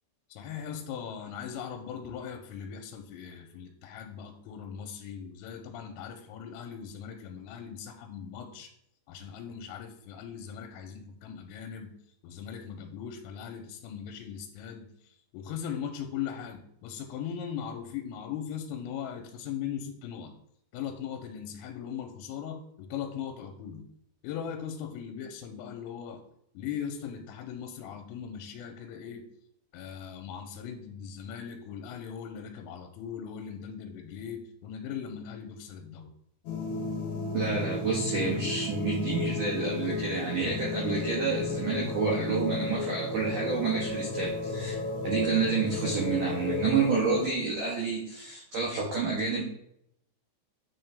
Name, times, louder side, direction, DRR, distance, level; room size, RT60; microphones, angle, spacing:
voice 1, 0.3-8.7 9.1-11.9 12.2-20.3 20.7-23.9 24.2-26.2 26.5-29.3 29.7-36.1, left 8 dB, 90° left, 3 dB, 3.3 m, -39 dB
sound 1, 36.5-47.3, left 3 dB, 70° left, 2.7 m, -33 dB
voice 2, 37.3-49.4, right 4 dB, 90° right, -4 dB, 1.8 m, -29 dB
9.8 x 3.9 x 3.4 m, 0.75 s
omnidirectional pair, 5.9 m